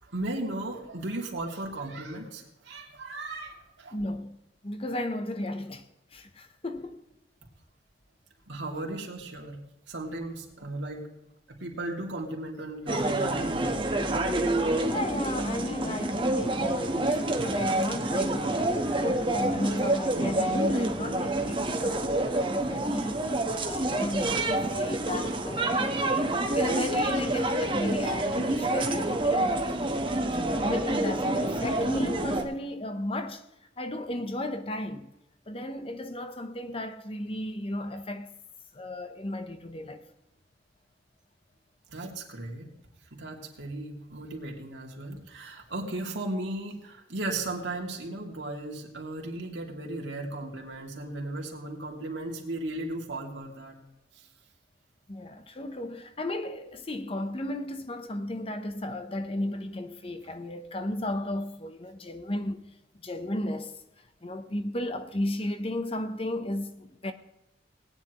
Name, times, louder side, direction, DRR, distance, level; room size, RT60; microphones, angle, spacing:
voice 1, 0.0-4.0 8.5-9.6 9.9-11.1 11.5-14.1 23.8-23.9 25.8-25.9 26.2-26.4 41.9-42.7 43.1-53.8 54.1-54.3, right 2 dB, 80° right, 2.7 m, -36 dB
voice 2, 3.9-4.4 4.6-5.9 6.1-7.1 14.9-23.2 23.6-30.1 30.3-33.4 33.8-35.1 35.5-38.3 38.7-40.1 55.1-62.6 62.9-63.8 64.2-67.1, left 1 dB, 30° left, 0.9 m, -34 dB
sound 1, 12.9-32.4, right 1 dB, 30° right, 1.4 m, -28 dB
19.0 x 10.0 x 3.1 m
head